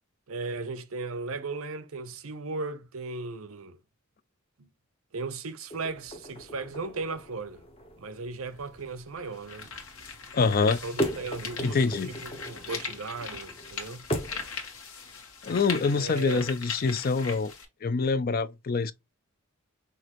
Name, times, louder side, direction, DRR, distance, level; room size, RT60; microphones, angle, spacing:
voice 1, 0.3-3.8 4.6-4.7 5.1-7.6 8.0-9.7 10.6-14.1 15.9-16.5, right 3 dB, 85° right, 0.8 m, -36 dB
sound 1, 5.7-14.5, equal, 25° left, 0.8 m, -38 dB
sound 2, 8.4-8.5 9.2-17.6, left 5 dB, 85° left, 1.5 m, -40 dB
voice 2, 10.3-10.8 11.6-12.1 15.4-17.5 17.8-18.9, left 4 dB, 45° left, 0.4 m, -25 dB
5.9 x 2.6 x 3.0 m
head